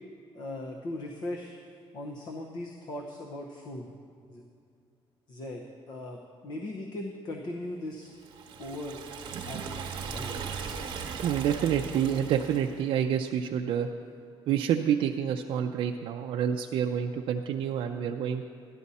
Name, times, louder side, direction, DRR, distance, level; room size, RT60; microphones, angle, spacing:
voice 1, 0.3-1.5 1.9-3.9 4.3-4.4 5.3-8.1 8.6-9.0 9.4-10.8, left 1 dB, 50° left, 1 dB, 0.8 m, -39 dB
Liquid, 8.2-12.8, right 6 dB, 55° right, 1.1 m, -38 dB
voice 2, 11.2-13.9 14.5-18.5, right 9 dB, 75° right, 2 dB, 0.4 m, -28 dB
13.0 x 11.0 x 4.2 m, 2.4 s
cardioid pair, 170°, 9 cm